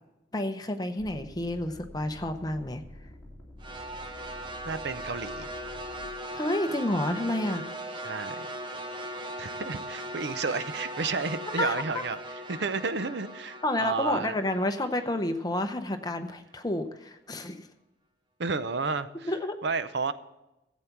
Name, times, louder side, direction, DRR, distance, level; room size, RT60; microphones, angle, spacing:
voice 1, 0.3-2.8 6.3-7.6 11.5-12.0 13.6-17.7 19.3-19.6, left 1 dB, 20° left, 8 dB, 0.7 m, -30 dB
sound 1, 1.0-6.1 6.8-7.4, left 1 dB, 5° left, 2.6 m, -48 dB
sound 2, 3.6-15.9, right 1 dB, 25° right, 0.9 m, -39 dB
voice 2, 4.7-5.5 8.0-8.4 9.4-12.2 12.5-14.4 18.4-19.3 19.6-20.1, right 4 dB, 65° right, 13 dB, 0.6 m, -31 dB
14.5 x 8.2 x 5.9 m, 0.96 s
head